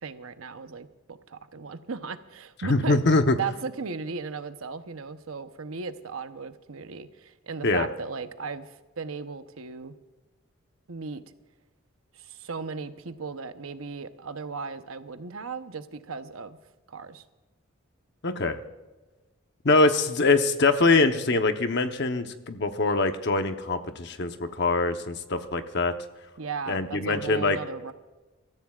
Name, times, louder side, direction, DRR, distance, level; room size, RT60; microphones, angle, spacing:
voice 1, 0.0-3.0 3.4-9.9 10.9-11.2 12.1-16.6 16.9-17.2 26.4-27.9, right 5 dB, 90° right, 9 dB, 0.9 m, -36 dB
voice 2, 2.7-3.4 7.6-7.9 18.2-18.6 19.6-25.9 26.7-27.6, left 3 dB, 55° left, 7 dB, 0.9 m, -23 dB
24.5 x 14.0 x 2.4 m, 1.2 s
head